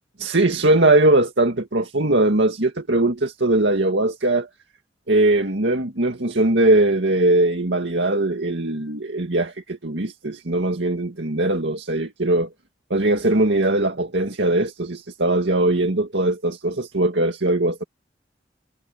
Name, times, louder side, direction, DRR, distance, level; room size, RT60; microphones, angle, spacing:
voice 1, 0.2-4.5 5.1-12.5 12.9-17.8, right 2 dB, 85° right, 2.0 m, -20 dB
head